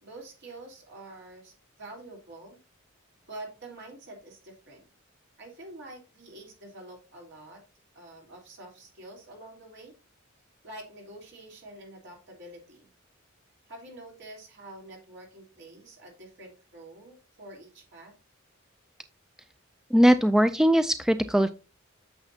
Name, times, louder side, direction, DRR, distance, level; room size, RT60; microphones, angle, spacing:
voice 1, 0.0-2.6 3.3-4.9 5.4-7.6 7.9-9.9 10.6-12.9 13.7-18.1, right 2 dB, 60° right, 0 dB, 3.4 m, -46 dB
voice 2, 19.9-21.5, equal, 5° right, 10 dB, 0.3 m, -20 dB
8.9 x 6.9 x 2.7 m, 0.30 s
head